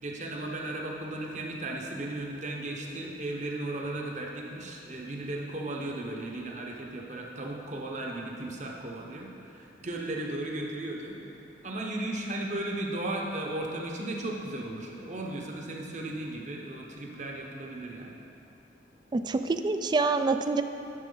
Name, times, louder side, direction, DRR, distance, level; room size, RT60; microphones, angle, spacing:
voice 1, 0.0-11.2 11.6-18.2, right 1 dB, 40° right, -1 dB, 1.0 m, -36 dB
voice 2, 19.1-20.6, right 3 dB, 25° right, 9 dB, 0.3 m, -26 dB
11.0 x 6.5 x 4.0 m, 2.8 s
head